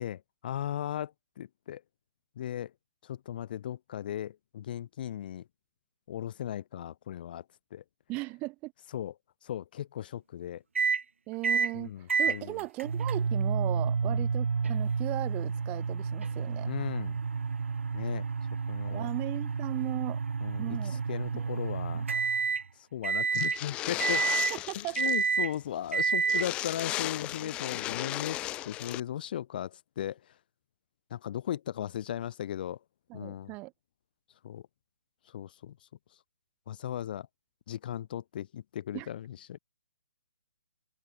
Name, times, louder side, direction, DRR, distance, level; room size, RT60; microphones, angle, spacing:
voice 1, 0.0-1.8 2.4-2.7 3.0-5.5 6.1-7.4 7.7-7.8 8.9-9.1 9.4-10.6 11.7-12.6 14.0-14.3 16.7-17.2 17.9-18.3 18.7-19.1 20.4-22.0 22.8-24.2 24.7-28.4 28.6-30.3 31.1-32.8 33.1-33.5 34.4-34.6 35.3-35.8 36.7-37.3 37.7-39.6, left 11 dB, 45° left, 0.9 m, -37 dB
voice 2, 8.1-8.7 11.3-16.7 18.9-20.2 20.6-21.0 21.3-21.5 21.9-22.3 24.5-25.1 27.4-27.5 33.1-33.7 38.9-39.1, right 23 dB, 25° right, 2.1 m, -37 dB
sound 1, 10.7-11.0 11.4-11.7 12.1-22.6 23.0-23.6 24.0-24.6 25.0-25.5 25.9-26.5, right 5 dB, 80° right, 1.0 m, -30 dB
sound 2, 23.3-25.3 25.5-25.6 25.9-26.0 26.3-29.0, left 16 dB, 15° left, 0.3 m, -35 dB
hypercardioid pair, 145°, 7 cm